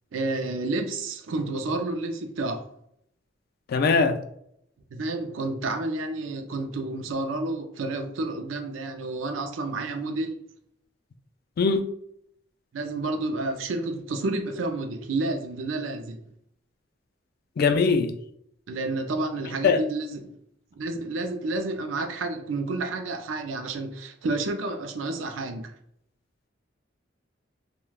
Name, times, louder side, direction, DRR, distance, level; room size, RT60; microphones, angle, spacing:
voice 1, 0.1-2.7 4.9-10.4 12.7-16.2 18.7-20.3 20.8-25.7, right 2 dB, 85° right, 6 dB, 0.4 m, -30 dB
voice 2, 3.7-4.2 11.6-11.9 17.6-18.1 19.6-19.8, left 4 dB, 55° left, 8 dB, 0.3 m, -21 dB
3.2 x 2.2 x 2.3 m, 0.71 s
head